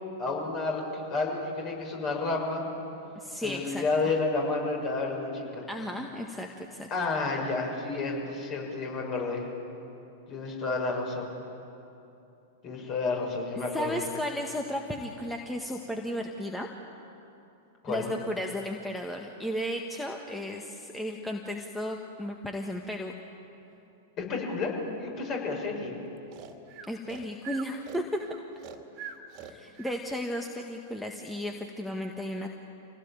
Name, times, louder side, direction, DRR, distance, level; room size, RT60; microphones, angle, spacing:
voice 1, 0.2-2.6 3.4-5.7 6.9-9.4 10.3-11.3 12.6-14.0 17.8-18.1 24.2-25.9, left 3 dB, 35° left, 0 dB, 6.4 m, -30 dB
voice 2, 3.1-4.1 5.7-6.9 13.7-16.7 17.9-23.1 26.9-28.0 29.4-32.5, equal, 5° left, 2 dB, 1.6 m, -34 dB
Breathing, 26.3-30.0, right 8 dB, 40° right, 2.3 m, -44 dB
25.5 x 17.5 x 9.0 m, 2.9 s
figure-of-eight pair, 100°, 0 cm